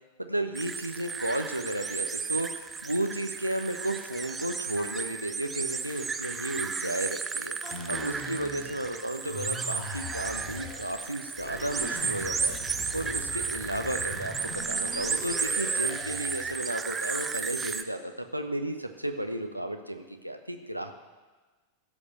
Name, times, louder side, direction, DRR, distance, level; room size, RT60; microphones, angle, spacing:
voice 1, 0.2-7.6 7.9-12.6 12.9-20.9, right 1 dB, 90° right, 6 dB, 0.8 m, -33 dB
sound 1, 0.5-17.8, right 5 dB, 15° right, 0.6 m, -33 dB
sound 2, 7.6-8.9 9.3-10.9 11.3-16.5, left 2 dB, 35° left, 2.8 m, -41 dB
15.0 x 5.3 x 7.9 m, 1.3 s
figure-of-eight pair, 90°, 0 cm